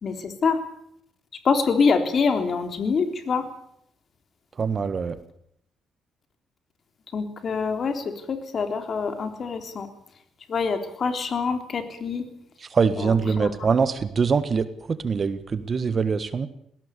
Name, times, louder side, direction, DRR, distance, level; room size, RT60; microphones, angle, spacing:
voice 1, 0.0-0.6 1.4-3.5 7.1-9.9 10.5-12.3 13.0-13.5, left 5 dB, 50° left, 7 dB, 3.6 m, -25 dB
voice 2, 4.6-5.1 12.7-14.6 15.0-16.5, right 5 dB, 40° right, 13 dB, 1.6 m, -23 dB
20.5 x 17.5 x 8.5 m, 0.73 s
cardioid pair, 90°, 0 cm